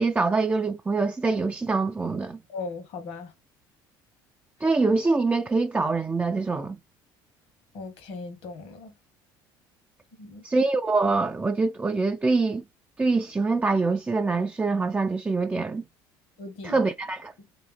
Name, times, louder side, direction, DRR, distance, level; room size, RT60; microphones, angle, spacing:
voice 1, 0.0-2.4 4.6-6.8 10.4-12.6 13.0-15.8 16.6-17.3, right 3 dB, 15° right, 0.4 m, -24 dB
voice 2, 2.5-3.3 7.7-8.9 10.2-10.4 16.4-16.8 17.4-17.5, left 4 dB, 65° left, 1.4 m, -38 dB
3.4 x 3.0 x 3.2 m
hypercardioid pair, 60°, 11 cm